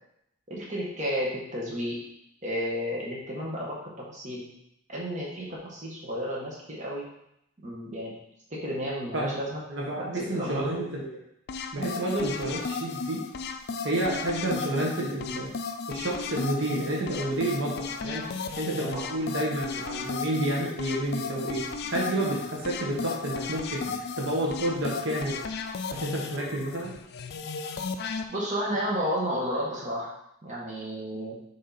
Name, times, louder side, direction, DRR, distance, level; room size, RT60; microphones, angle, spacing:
voice 1, 0.5-2.0 2.4-4.5 4.9-7.1 7.6-8.1 8.5-9.6 10.1-10.8 18.8-19.1 28.3-30.1 30.4-31.4, equal, 35° right, -4 dB, 1.4 m, -32 dB
voice 2, 9.1-11.1 11.7-13.2 13.8-15.5 15.9-18.2 18.6-25.4 25.9-26.9, right 1 dB, 65° right, -3 dB, 1.3 m, -30 dB
sound 1, 11.5-28.2, left 4 dB, 50° left, 0.4 m, -35 dB
6.5 x 3.7 x 4.2 m, 0.80 s
head